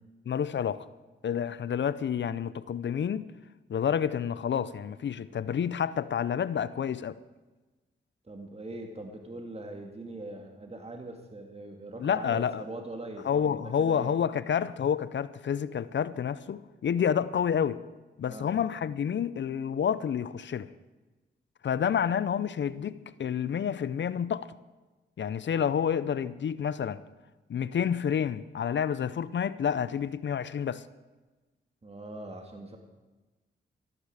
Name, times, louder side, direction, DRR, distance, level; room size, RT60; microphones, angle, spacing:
voice 1, 0.3-0.9 1.2-3.2 3.7-7.2 12.0-12.6 13.2-17.8 18.2-20.7 21.6-24.5 25.2-27.0 27.5-30.8, left 8 dB, 60° left, 0.6 m, -29 dB
voice 2, 8.2-14.1 18.3-18.5 31.8-32.8, right 2 dB, 30° right, 2.2 m, -42 dB
15.0 x 13.5 x 4.9 m
cardioid pair, 50°, 21 cm